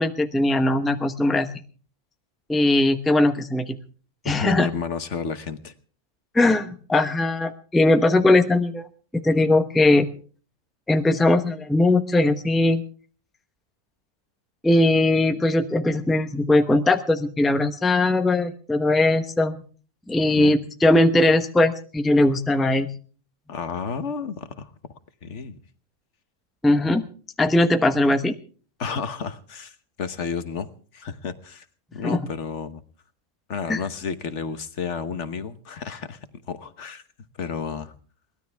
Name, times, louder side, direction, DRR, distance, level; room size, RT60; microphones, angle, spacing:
voice 1, 0.0-1.5 2.5-3.8 4.2-4.7 6.3-8.9 9.1-10.1 10.9-12.8 14.6-19.5 20.1-22.9 26.6-27.0 27.4-28.3 32.0-32.2 33.7-33.8, left 2 dB, ahead, 8 dB, 0.9 m, -20 dB
voice 2, 4.2-5.7 20.4-20.6 23.5-24.7 25.2-25.6 28.8-31.7 31.9-32.8 33.5-36.2 36.5-37.0 37.4-37.9, left 6 dB, 65° left, 11 dB, 1.4 m, -31 dB
22.5 x 18.0 x 3.5 m, 0.41 s
omnidirectional pair, 1.3 m